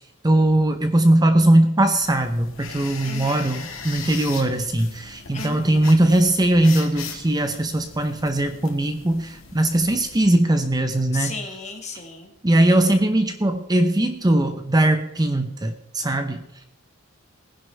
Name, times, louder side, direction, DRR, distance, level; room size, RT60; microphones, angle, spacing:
voice 1, 0.2-11.3 12.4-16.4, right 1 dB, 20° right, 7 dB, 0.8 m, -20 dB
sound 1, 1.9-10.3, left 6 dB, 75° left, 1.9 m, -39 dB
voice 2, 3.0-3.4 5.3-5.9 11.1-12.3, left 4 dB, 35° left, 4 dB, 1.8 m, -34 dB
19.5 x 10.5 x 3.4 m, 0.84 s
head